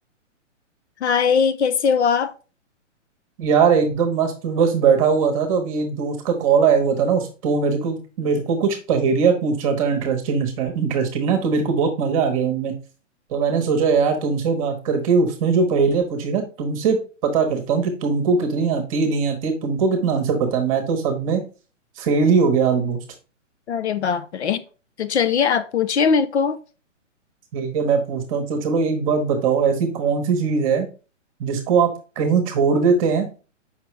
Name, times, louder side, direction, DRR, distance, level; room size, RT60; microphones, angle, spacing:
voice 1, 1.0-2.3 23.7-24.6 25.0-26.6, left 6 dB, 60° left, 0.7 m, -20 dB
voice 2, 3.4-12.7 13.3-21.4 22.0-23.0 27.5-30.9 31.4-33.3, right 5 dB, 25° right, 1.1 m, -20 dB
6.9 x 5.7 x 3.3 m
hypercardioid pair, 160°, 37 cm